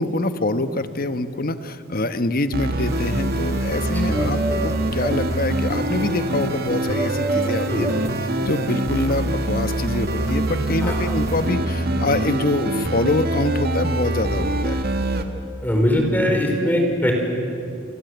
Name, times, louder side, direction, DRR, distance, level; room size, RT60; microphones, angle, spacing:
voice 1, 0.0-8.0 8.4-14.8, left 2 dB, 50° left, 10 dB, 1.1 m, -25 dB
sound 1, 2.5-15.2, right 1 dB, 55° right, 1.8 m, -24 dB
sound 2, 2.9-11.5, right 2 dB, 15° right, 1.3 m, -33 dB
voice 2, 15.6-17.1, equal, 10° left, 2 dB, 4.7 m, -21 dB
29.5 x 24.5 x 8.0 m, 2.5 s
head